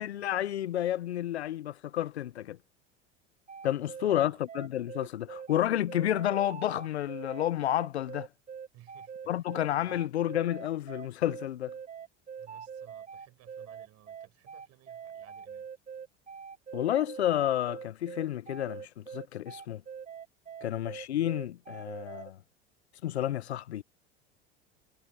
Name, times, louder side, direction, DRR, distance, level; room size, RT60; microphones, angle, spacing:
voice 1, 0.0-2.6 3.6-8.3 9.3-11.7 16.7-19.8 20.6-22.4 23.0-23.8, left 12 dB, 90° left, 0.9 m, -30 dB
sound 1, 3.5-22.3, right 7 dB, 25° right, 1.2 m, -44 dB
voice 2, 3.7-4.4 8.7-9.5 9.8-10.0 12.4-15.7 20.6-20.9, right 15 dB, 50° right, 6.0 m, -59 dB
hypercardioid pair, 80°, 32 cm